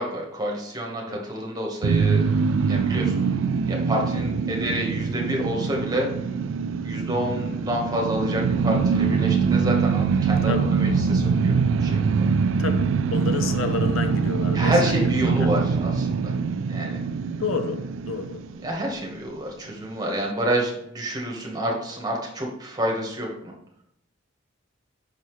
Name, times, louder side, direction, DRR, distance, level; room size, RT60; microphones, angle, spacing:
voice 1, 0.0-2.3 2.7-3.2 3.6-6.1 6.8-11.5 11.8-12.2 14.5-16.3 16.7-17.0 18.6-23.5, equal, 20° right, -1 dB, 1.2 m, -28 dB
sound 1, 1.8-19.0, right 5 dB, 65° right, 0.3 m, -23 dB
voice 2, 10.4-10.7 12.6-15.5 17.4-18.5, left 5 dB, 75° left, 7 dB, 0.6 m, -30 dB
5.7 x 5.4 x 3.1 m, 0.76 s
head